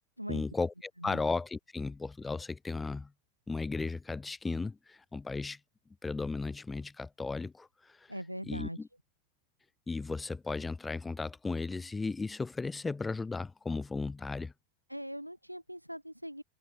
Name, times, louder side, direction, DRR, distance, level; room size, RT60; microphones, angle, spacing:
voice 1, 0.3-3.1 3.5-5.6 6.0-8.1 8.5-8.9 9.9-14.5, left 3 dB, 10° left, 0.7 m, -35 dB
voice 2, 8.1-8.8 14.9-16.4, equal, 90° right, 1.5 m, -41 dB
figure-of-eight pair, 90°, 0 cm